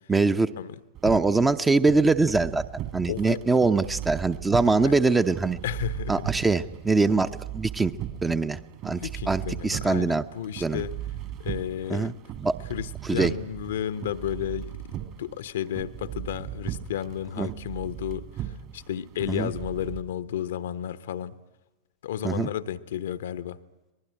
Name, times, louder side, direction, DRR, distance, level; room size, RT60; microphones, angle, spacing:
voice 1, 0.1-0.5 1.0-2.6 2.9-5.6 6.1-7.9 8.2-10.2 10.6-10.8 11.9-12.1 12.4-12.5 13.1-13.3 17.4-17.5 19.3-19.5 22.2-22.5, right 3 dB, 10° right, 0.9 m, -23 dB
sound 1, 0.9-20.0, right 11 dB, 40° right, 2.4 m, -38 dB
voice 2, 3.1-3.4 4.7-5.0 5.6-6.3 8.9-11.0 11.4-12.2 12.7-21.4 22.0-23.6, left 10 dB, 60° left, 1.0 m, -33 dB
24.5 x 20.0 x 10.0 m
figure-of-eight pair, 90°, 0 cm